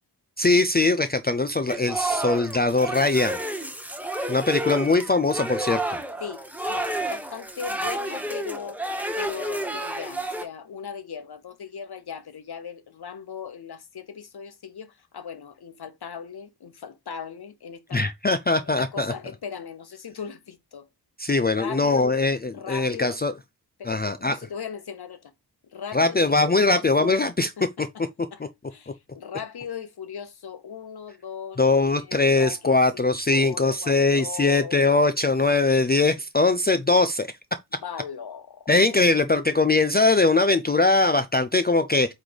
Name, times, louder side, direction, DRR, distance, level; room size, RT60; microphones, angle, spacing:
voice 1, 0.4-3.4 4.3-6.0 17.9-19.1 21.2-23.3 23.8-24.4 25.9-27.5 27.8-27.9 28.4-28.5 31.6-37.3 38.7-42.1, left 3 dB, 25° left, 0.5 m, -21 dB
sound 1, 1.7-10.5, right 1 dB, 5° right, 0.9 m, -30 dB
voice 2, 6.7-8.8 9.2-18.0 18.8-20.9 21.5-22.2 22.5-23.2 23.8-25.3 25.7-26.2 26.5-27.1 27.6-28.0 28.3-28.4 28.7-34.9 37.8-38.7, left 7 dB, 70° left, 1.0 m, -38 dB
8.1 x 3.3 x 4.0 m
wide cardioid pair, 120°, 40 cm